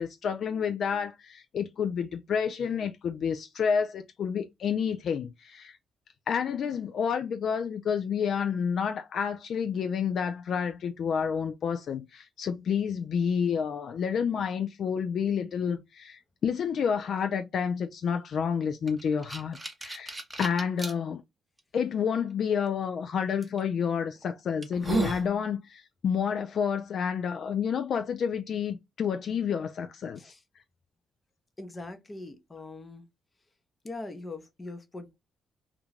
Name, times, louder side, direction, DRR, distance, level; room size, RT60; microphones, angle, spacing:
voice 1, 0.0-5.8 6.3-21.2 21.7-30.2, left 7 dB, 60° left, 0.3 m, -29 dB
sound 1, 18.9-20.9 21.6-21.7 23.4-23.6 24.2-24.3 24.6-25.3, right 3 dB, 15° right, 0.7 m, -32 dB
voice 2, 31.6-33.0 33.8-35.2, left 2 dB, 25° left, 0.6 m, -41 dB
2.5 x 2.2 x 3.0 m
cardioid pair, 90°, 0 cm